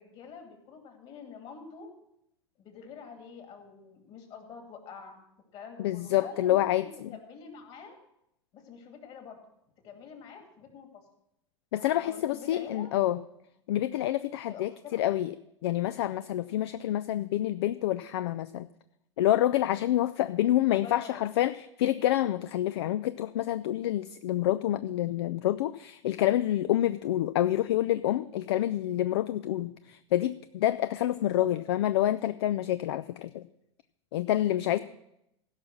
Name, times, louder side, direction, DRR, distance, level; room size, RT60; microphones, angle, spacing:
voice 1, 0.0-1.9 2.6-5.2 5.5-8.0 8.5-9.4 9.8-11.0 11.8-12.9 14.5-15.0 20.7-21.3 31.1-31.5 34.7-34.8, left 6 dB, 40° left, 4 dB, 2.4 m, -46 dB
voice 2, 5.8-7.1 11.7-13.2 13.7-15.3 15.6-18.7 19.2-33.5 34.1-34.8, left 13 dB, 60° left, 14 dB, 0.4 m, -27 dB
16.5 x 5.8 x 6.0 m, 0.80 s
figure-of-eight pair, 80°, 15 cm